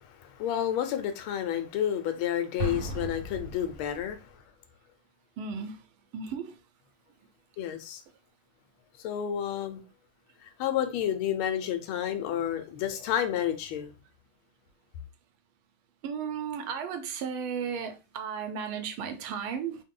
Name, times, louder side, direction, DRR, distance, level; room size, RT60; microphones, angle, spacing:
voice 1, 0.0-4.2 7.6-8.0 9.0-9.8 10.4-14.0, left 10 dB, 90° left, 1.5 m, -30 dB
Explosion, 2.6-4.3, right 1 dB, 40° right, 0.8 m, -36 dB
voice 2, 5.4-5.8 6.1-6.6 16.0-19.8, right 6 dB, 90° right, 1.5 m, -34 dB
3.8 x 2.2 x 3.7 m
omnidirectional pair, 2.2 m